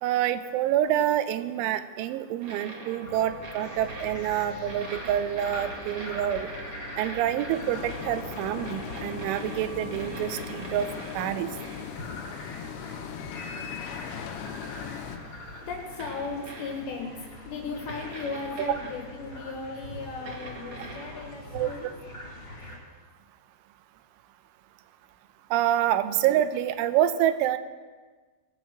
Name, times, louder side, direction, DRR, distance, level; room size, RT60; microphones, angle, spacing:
voice 1, 0.0-6.5 7.0-10.9 11.1-11.5 21.5-21.9 25.5-27.6, right 11 dB, 85° right, 11 dB, 3.1 m, -27 dB
sound 1, 2.4-12.1 14.5-14.6 16.0-17.0 17.9-19.1 20.3-21.3, right 2 dB, 45° right, 2.0 m, -42 dB
sound 2, 3.0-22.8, left 1 dB, 30° left, 4.0 m, -43 dB
sound 3, 7.5-15.2, left 9 dB, 90° left, 3.3 m, -39 dB
voice 2, 15.6-21.9, left 4 dB, 70° left, 1 dB, 3.3 m, -37 dB
20.5 x 8.2 x 6.0 m, 1.4 s
omnidirectional pair, 5.5 m